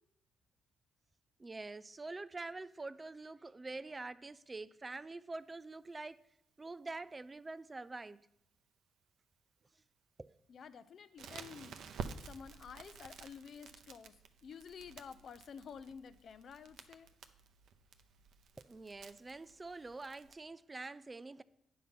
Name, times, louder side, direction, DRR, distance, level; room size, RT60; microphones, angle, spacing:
voice 1, 1.4-6.2 6.6-8.3 10.2-10.3 18.6-21.4, right 3 dB, 25° right, 0.3 m, -46 dB
voice 2, 10.5-11.8 12.3-14.1 14.4-17.1, left 6 dB, 55° left, 0.5 m, -51 dB
Crackle, 11.2-20.3, right 6 dB, 75° right, 0.6 m, -51 dB
9.4 x 5.5 x 5.9 m
cardioid pair, 90°, 0 cm